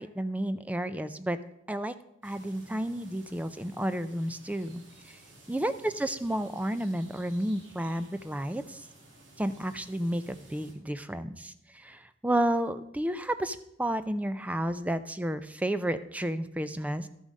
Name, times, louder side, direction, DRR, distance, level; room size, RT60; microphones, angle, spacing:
voice 1, 0.0-1.4 1.7-1.9 2.2-5.2 5.5-8.9 9.4-17.1, right 1 dB, 10° right, 12 dB, 0.4 m, -31 dB
sound 1, 2.2-10.7, right 2 dB, 75° right, 2.1 m, -55 dB
12.0 x 7.3 x 5.2 m, 0.81 s
head